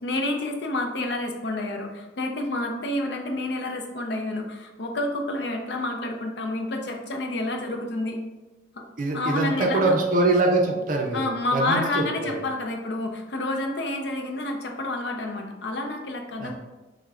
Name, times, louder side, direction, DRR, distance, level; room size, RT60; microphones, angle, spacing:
voice 1, 0.0-8.2 8.7-8.8 9.1-10.0 11.1-16.5, left 2 dB, 65° left, 3 dB, 0.5 m, -29 dB
voice 2, 9.0-11.2 11.5-12.3 16.4-16.5, right 2 dB, 45° right, 1 dB, 0.5 m, -23 dB
5.9 x 2.1 x 2.4 m, 1.1 s
head